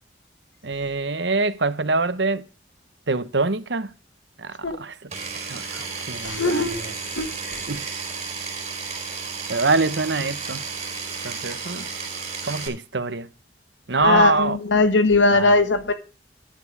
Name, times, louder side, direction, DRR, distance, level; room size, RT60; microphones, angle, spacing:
voice 1, 0.6-2.5 3.1-3.9 4.4-5.1 5.4-6.9 7.7-8.1 9.5-10.7 11.2-11.9 12.4-13.3 13.9-14.6 15.3-15.6, right 3 dB, 75° right, 1.1 m, -25 dB
Power tool, 5.1-12.7, right 5 dB, 35° right, 4.0 m, -33 dB
voice 2, 6.2-6.8 7.2-7.7 14.0-15.9, left 3 dB, 90° left, 1.7 m, -20 dB
10.5 x 9.4 x 4.8 m
head